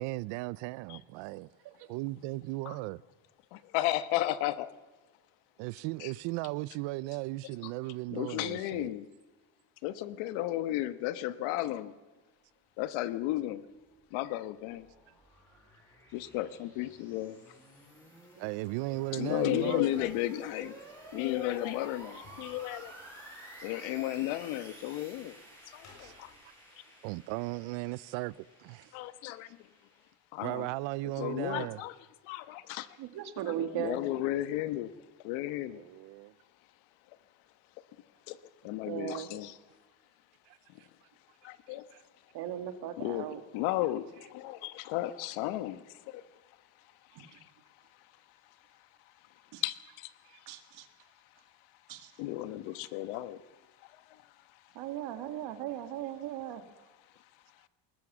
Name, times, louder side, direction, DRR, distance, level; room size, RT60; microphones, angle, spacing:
voice 1, 0.0-1.5 1.9-3.0 5.6-8.9 18.4-20.1 23.6-23.7 26.0-26.1 27.0-28.3 28.6-28.9 30.4-31.8 35.7-36.3 41.9-42.0 50.3-50.4, right 20 dB, 70° right, 0.7 m, -36 dB
voice 2, 3.5-4.7 6.0-6.1 7.6-7.7 8.1-9.1 9.8-11.9 12.8-13.6 14.1-14.9 16.1-17.4 19.1-20.8 21.1-22.9 23.6-25.3 25.7-26.3 28.9-29.5 30.3-30.7 31.2-31.9 32.2-32.9 33.4-34.9 35.2-35.8 38.3-38.4 38.6-39.6 41.4-41.8 43.0-46.2 49.6-50.1 52.2-53.4, left 15 dB, 80° left, 1.3 m, -34 dB
sound 1, 14.1-30.1, right 1 dB, 5° left, 6.9 m, -52 dB
sound 2, 22.1-26.4, left 3 dB, 35° left, 7.3 m, -63 dB
voice 3, 33.0-34.0 38.9-39.3 42.3-43.4 47.2-47.3 49.5-49.6 50.5-50.9 51.9-52.1 54.8-56.6, right 11 dB, 50° right, 1.9 m, -37 dB
20.5 x 19.0 x 7.3 m
cardioid pair, 175°, 48 cm